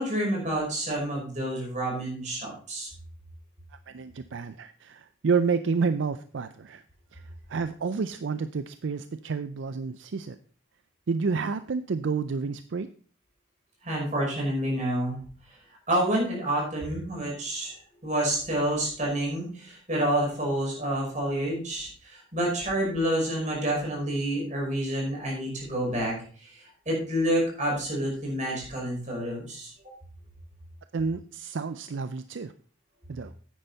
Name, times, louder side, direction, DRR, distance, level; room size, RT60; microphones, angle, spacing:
voice 1, 0.0-2.9 13.8-15.2 15.9-26.1 26.4-29.7, right 1 dB, 35° right, -2 dB, 5.4 m, -28 dB
voice 2, 3.9-6.8 7.1-7.2 7.5-10.4 11.1-12.9 30.9-32.5 33.1-33.3, right 5 dB, 70° right, 12 dB, 0.5 m, -29 dB
10.0 x 9.0 x 4.0 m, 0.42 s
head